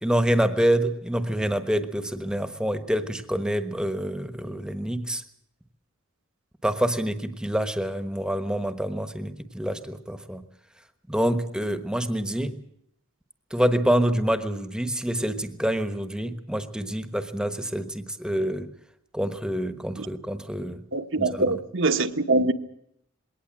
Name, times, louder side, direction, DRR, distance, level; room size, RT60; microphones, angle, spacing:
voice 1, 0.0-5.2 6.6-10.4 11.1-12.6 13.5-18.7 19.1-20.8 21.2-21.3, equal, 5° right, 1.2 m, -26 dB
voice 2, 20.9-22.5, right 2 dB, 60° right, 1.2 m, -23 dB
21.5 x 18.0 x 7.6 m
head